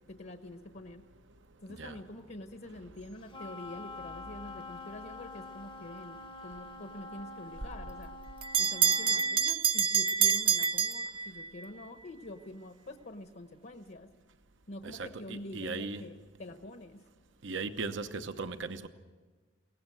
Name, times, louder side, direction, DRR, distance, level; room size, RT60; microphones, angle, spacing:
voice 1, 0.1-1.0 1.6-8.1 8.6-14.1 14.7-17.0, left 1 dB, 55° left, 7 dB, 1.1 m, -46 dB
Wind instrument woodwind instrument, 3.3-9.4, left 2 dB, 25° left, 0.8 m, -46 dB
Bell, 7.6-11.7, right 7 dB, 30° right, 0.6 m, -28 dB
voice 2, 14.8-16.0 17.4-18.9, right 4 dB, 75° right, 9 dB, 0.9 m, -38 dB
23.0 x 18.0 x 7.8 m, 1.4 s
head